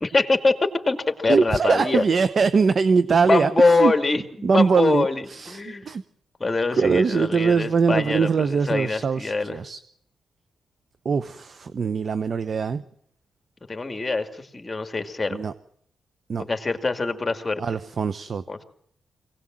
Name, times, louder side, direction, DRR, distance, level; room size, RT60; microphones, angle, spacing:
voice 1, 0.0-2.0 3.3-5.9 6.4-9.6 13.7-15.4 16.4-17.6 18.5-18.6, left 3 dB, 25° left, 7 dB, 2.4 m, -24 dB
voice 2, 1.3-3.9 4.4-6.0 6.8-9.8 11.0-12.8 15.3-15.5 16.3-16.4 17.6-18.4, right 5 dB, 55° right, 14 dB, 0.8 m, -22 dB
23.5 x 18.0 x 7.6 m, 0.69 s
cardioid pair, 75°, 0 cm